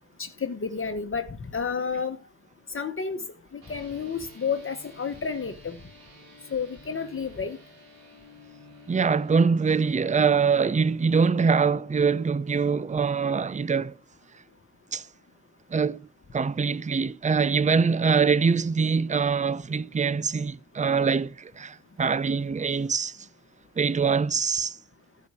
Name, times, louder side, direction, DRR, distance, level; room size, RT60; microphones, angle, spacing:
voice 1, 0.2-2.2 2.7-3.2 3.5-5.8 6.5-7.6, left 5 dB, 35° left, 1.2 m, -31 dB
sound 1, 3.6-13.1, left 1 dB, 70° right, 3.4 m, -52 dB
voice 2, 8.9-14.0 14.9-15.1 15.7-23.2 23.8-24.8, right 5 dB, 20° right, 0.7 m, -24 dB
15.0 x 5.3 x 4.8 m
supercardioid pair, 55°, 37 cm